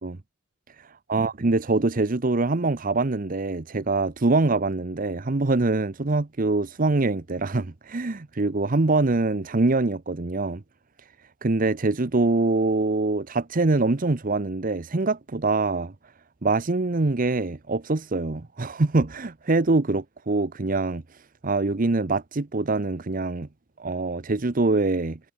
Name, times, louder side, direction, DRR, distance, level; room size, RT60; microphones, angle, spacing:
voice 1, 1.1-10.6 11.4-15.9 16.4-21.0 21.4-23.5 23.8-25.2, right 3 dB, 45° right, 0.8 m, -24 dB
head